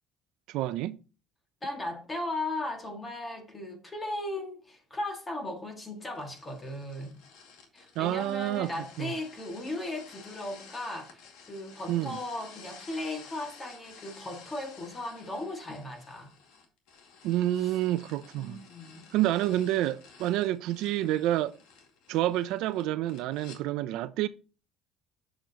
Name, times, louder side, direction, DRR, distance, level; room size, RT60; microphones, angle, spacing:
voice 1, 0.5-1.0 8.0-8.7 9.0-9.1 11.9-12.2 17.2-18.6 19.1-21.6 22.1-24.3, right 14 dB, 70° right, 0.4 m, -28 dB
voice 2, 1.6-7.1 7.7-16.3 17.6-17.7 18.3-19.1, left 2 dB, 15° left, 1.9 m, -37 dB
sound 1, 6.1-23.6, left 5 dB, 80° left, 2.1 m, -53 dB
7.6 x 7.0 x 2.9 m
cardioid pair, 140°, 0 cm